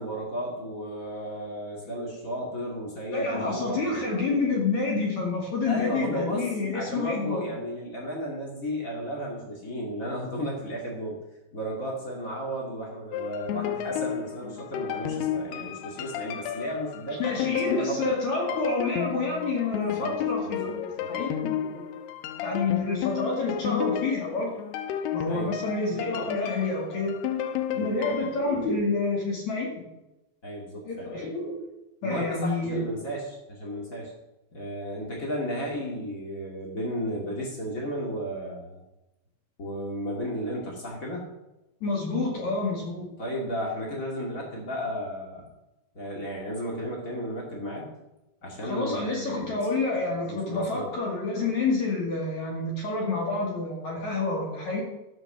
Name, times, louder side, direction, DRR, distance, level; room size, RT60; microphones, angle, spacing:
voice 1, 0.0-3.9 5.6-11.2 11.5-18.1 20.0-20.2 20.4-21.2 25.3-25.5 27.7-27.9 30.4-31.1 32.0-34.1 34.5-38.8 39.6-41.3 43.2-45.5 45.9-47.9 48.4-49.6 50.3-50.9, equal, 65° left, -2 dB, 0.8 m, -34 dB
voice 2, 3.1-7.5 17.2-21.9 22.4-24.5 25.1-27.1 27.8-29.8 30.8-31.6 32.0-32.9 41.8-43.1 48.6-54.8, left 3 dB, 45° left, -1 dB, 2.8 m, -28 dB
sound 1, 13.1-28.4, left 9 dB, 85° left, 2.3 m, -32 dB
14.0 x 6.3 x 6.7 m, 0.96 s
omnidirectional pair, 5.6 m